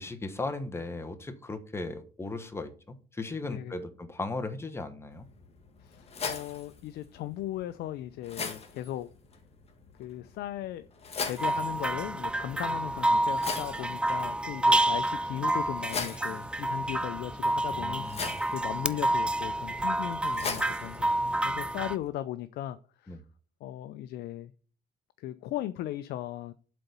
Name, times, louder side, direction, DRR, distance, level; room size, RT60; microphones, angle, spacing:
voice 1, 0.0-5.3 17.7-18.4 23.1-23.2, left 2 dB, 15° left, 1.2 m, -37 dB
voice 2, 3.4-3.8 5.8-9.1 10.0-10.9 11.2-23.2 23.6-24.5 25.2-26.5, left 13 dB, 75° left, 0.5 m, -37 dB
sound 1, 5.1-22.1, left 5 dB, 35° left, 1.6 m, -42 dB
sound 2, 11.4-22.0, right 1 dB, 5° right, 0.4 m, -29 dB
7.7 x 4.1 x 6.8 m
cardioid pair, 110°, 17 cm